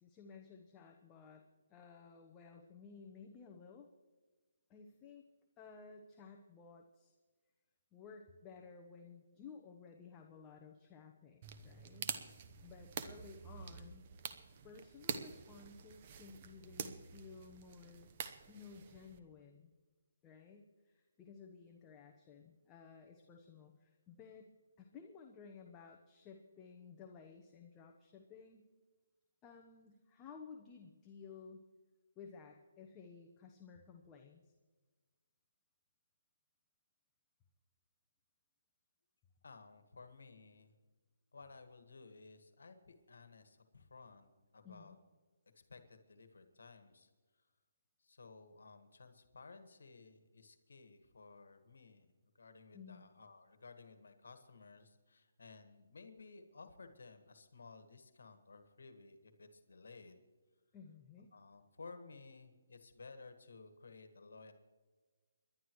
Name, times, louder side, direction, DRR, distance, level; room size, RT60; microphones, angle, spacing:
voice 1, 0.0-1.4 1.7-3.9 4.7-5.2 5.6-7.1 7.9-12.1 12.6-14.0 14.6-18.1 18.5-19.7 20.2-24.5 24.8-28.7 29.4-31.6 32.2-34.5 44.6-45.0 52.7-53.0 60.7-61.3, left 5 dB, 15° left, 2 dB, 0.9 m, -56 dB
sound 1, 11.4-19.2, right 7 dB, 35° right, 0.9 m, -47 dB
voice 2, 39.4-40.7 41.3-44.9 45.7-47.1 48.0-52.1 52.3-60.2 61.3-64.5, left 4 dB, 80° left, 8 dB, 1.6 m, -56 dB
28.0 x 11.5 x 3.1 m, 1.4 s
hypercardioid pair, 160°, 0 cm